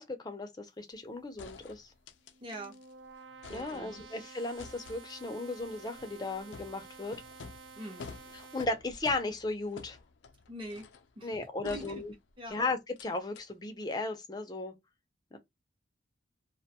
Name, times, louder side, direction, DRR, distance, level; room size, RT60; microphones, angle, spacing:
voice 1, 0.0-1.9 3.5-7.2 8.5-10.0 11.2-12.1 12.5-14.7 15.3-15.4, left 2 dB, 20° left, 0.5 m, -36 dB
sound 1, 0.9-1.0 1.4-2.9 3.2-4.2 4.6-11.1 11.6-12.5 13.0-13.1 13.3-13.4, left 4 dB, 75° left, 0.4 m, -51 dB
sound 2, 2.1-8.6, right 4 dB, 65° right, 0.4 m, -51 dB
voice 2, 2.4-2.8 3.5-4.0 7.8-8.1 10.5-10.9 11.2-12.0 12.4-12.6, right 1 dB, 25° right, 0.7 m, -44 dB
2.5 x 2.2 x 2.8 m
head